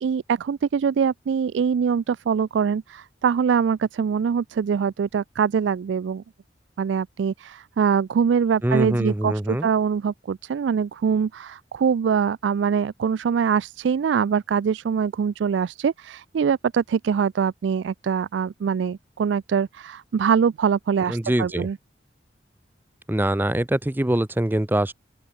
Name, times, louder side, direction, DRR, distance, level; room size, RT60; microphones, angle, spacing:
voice 1, 0.0-6.2 6.8-21.8, right 6 dB, 90° right, 0.3 m, -23 dB
voice 2, 8.6-9.7 21.1-21.7 23.1-24.9, right 1 dB, 10° right, 0.6 m, -23 dB
open air
head